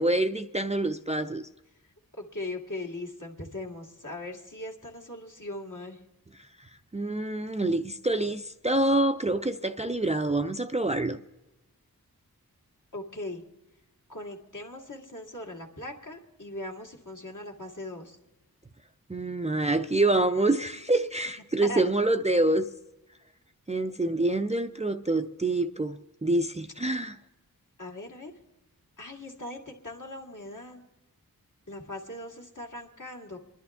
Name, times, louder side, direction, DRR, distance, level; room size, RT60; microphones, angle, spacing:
voice 1, 0.0-1.5 6.9-11.2 19.1-22.7 23.7-27.2, right 2 dB, 20° right, 0.4 m, -26 dB
voice 2, 2.1-6.0 12.9-13.4 14.1-18.2 21.6-21.8 27.8-28.3 29.0-30.8 31.7-33.4, left 2 dB, 55° left, 2.1 m, -39 dB
27.0 x 11.0 x 3.5 m
wide cardioid pair, 45°, 36 cm